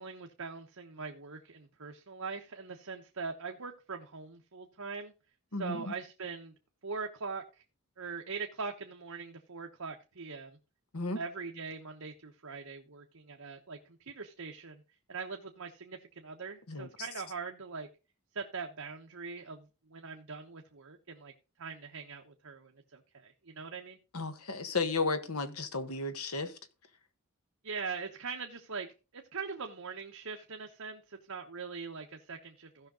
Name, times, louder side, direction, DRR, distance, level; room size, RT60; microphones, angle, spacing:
voice 1, 0.0-5.1 5.5-6.5 6.8-7.6 8.0-10.6 11.1-14.8 15.1-17.9 18.3-21.3 21.6-24.0 27.6-32.9, right 5 dB, 75° right, 1.2 m, -42 dB
voice 2, 5.5-5.8 10.9-11.2 16.7-16.9 24.1-26.5, left 3 dB, 85° left, 1.4 m, -33 dB
16.0 x 5.8 x 3.8 m
head